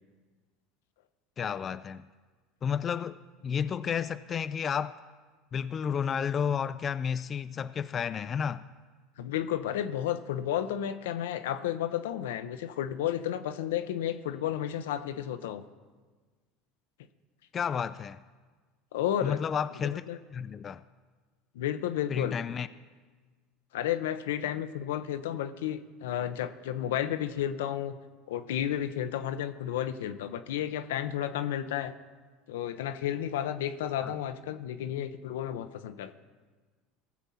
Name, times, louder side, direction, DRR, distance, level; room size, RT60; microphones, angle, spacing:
voice 1, 1.4-2.1 2.6-5.0 5.5-8.6 17.5-18.2 19.2-20.0 20.3-20.8 22.1-22.7 34.0-34.1, left 7 dB, 35° left, 13 dB, 0.3 m, -31 dB
voice 2, 9.2-15.6 18.9-19.4 19.8-20.2 21.5-22.3 23.7-27.9 28.3-31.9 32.5-36.1, left 11 dB, 85° left, 10 dB, 0.6 m, -32 dB
18.5 x 7.2 x 4.2 m, 1.4 s
hypercardioid pair, 90°, 0 cm